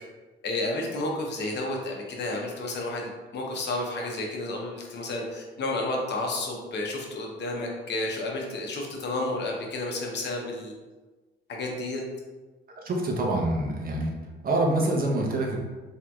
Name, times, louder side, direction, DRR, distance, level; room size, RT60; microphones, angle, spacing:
voice 1, 0.4-10.7 11.5-12.0, left 2 dB, 60° left, 0 dB, 0.7 m, -31 dB
voice 2, 12.8-14.1 14.4-15.6, right 2 dB, 45° right, 0 dB, 0.7 m, -26 dB
3.4 x 2.7 x 2.3 m, 1.3 s
cardioid pair, 90°, 20 cm